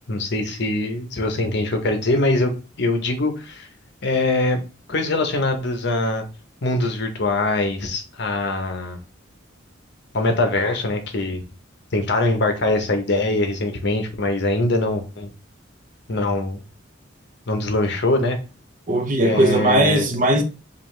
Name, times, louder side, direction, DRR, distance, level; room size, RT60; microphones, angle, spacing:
voice 1, 0.1-2.5 2.8-3.7 4.0-4.6 4.9-6.2 6.6-9.0 10.1-11.4 11.9-15.3 16.1-16.6 17.5-18.4 19.2-20.1, left 2 dB, 60° left, 0.8 m, -22 dB
voice 2, 18.9-20.4, right 1 dB, 45° right, 0.7 m, -18 dB
5.2 x 2.5 x 3.1 m
head